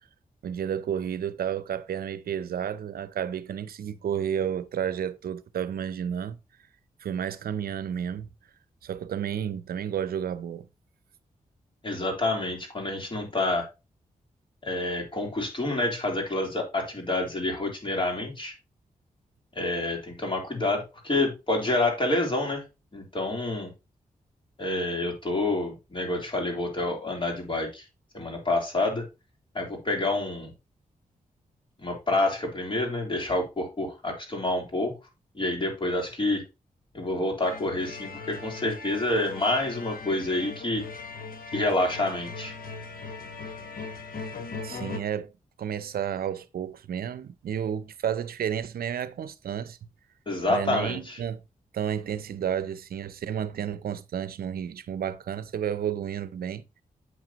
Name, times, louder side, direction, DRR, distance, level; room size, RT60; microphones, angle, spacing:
voice 1, 0.4-6.4 7.0-8.3 8.8-10.7 44.6-45.3 45.6-49.8 50.5-51.4 51.7-56.6, right 9 dB, 85° right, 0.6 m, -31 dB
voice 2, 11.8-13.7 14.6-18.5 19.5-22.6 22.9-23.7 24.6-27.8 28.1-29.0 29.5-30.5 31.8-34.9 35.3-36.4 36.9-40.8 41.5-42.5 50.3-51.2, left 2 dB, 35° left, 3.2 m, -28 dB
sound 1, 37.4-45.0, left 4 dB, 75° left, 1.3 m, -39 dB
8.1 x 5.9 x 2.9 m
cardioid pair, 55°, 15 cm